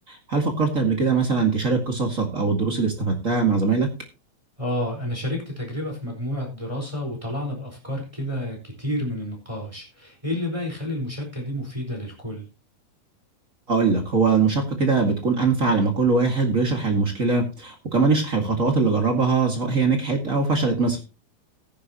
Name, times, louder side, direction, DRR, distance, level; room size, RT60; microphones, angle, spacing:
voice 1, 0.1-3.9 13.7-21.0, right 4 dB, 30° right, 3 dB, 1.6 m, -22 dB
voice 2, 4.6-12.5, left 1 dB, 10° right, 0 dB, 4.1 m, -30 dB
16.0 x 10.0 x 2.9 m, 0.29 s
omnidirectional pair, 4.4 m